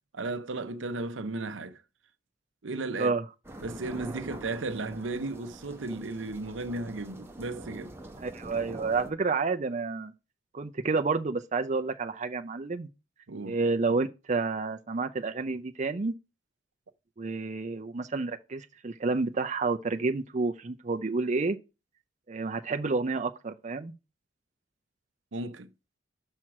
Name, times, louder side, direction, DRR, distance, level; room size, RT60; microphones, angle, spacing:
voice 1, 0.1-1.8 2.6-3.1 3.6-8.0 13.3-13.6 25.3-25.7, right 2 dB, 85° right, 0.7 m, -35 dB
sound 1, 3.4-9.1, right 1 dB, 15° right, 1.0 m, -45 dB
voice 2, 8.2-10.1 10.5-12.9 13.4-16.1 17.2-21.6 22.3-23.9, right 3 dB, 40° right, 0.5 m, -30 dB
6.3 x 4.3 x 6.0 m
head